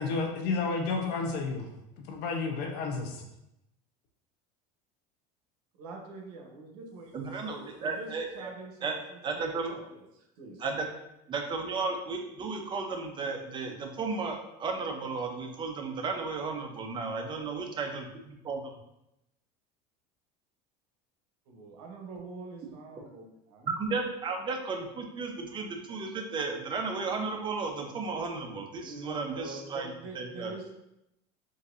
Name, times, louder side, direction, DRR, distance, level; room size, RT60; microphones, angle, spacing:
voice 1, 0.0-1.7 2.0-3.2, left 4 dB, 55° left, 2 dB, 0.7 m, -31 dB
voice 2, 5.8-10.6 21.5-23.8 28.8-30.7, right 3 dB, 85° right, 1 dB, 0.8 m, -45 dB
voice 3, 7.1-8.5 8.8-8.9 9.2-9.8 10.6-10.9 11.3-18.7 23.7-30.5, right 4 dB, 25° right, 3 dB, 0.5 m, -34 dB
3.9 x 2.6 x 2.5 m, 0.86 s
supercardioid pair, 130°, 20 cm